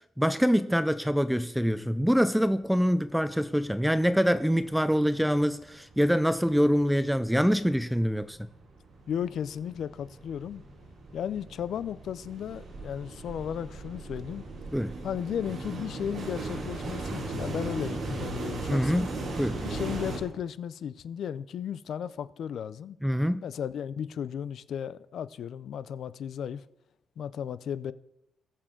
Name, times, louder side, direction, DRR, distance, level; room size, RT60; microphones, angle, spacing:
voice 1, 0.2-8.4 14.7-14.9 18.7-19.1 19.4-19.6 23.0-23.4, equal, ahead, 0.4 m, -25 dB
sound 1, 3.5-3.6 3.9-4.9 5.2-20.2, right 2 dB, 55° right, 3.4 m, -38 dB
voice 2, 9.1-10.6 11.1-14.4 15.0-19.1 19.6-23.0 23.4-26.6 27.2-27.9, left 9 dB, 70° left, 0.4 m, -35 dB
19.0 x 7.4 x 3.8 m
cardioid pair, 120°, 0 cm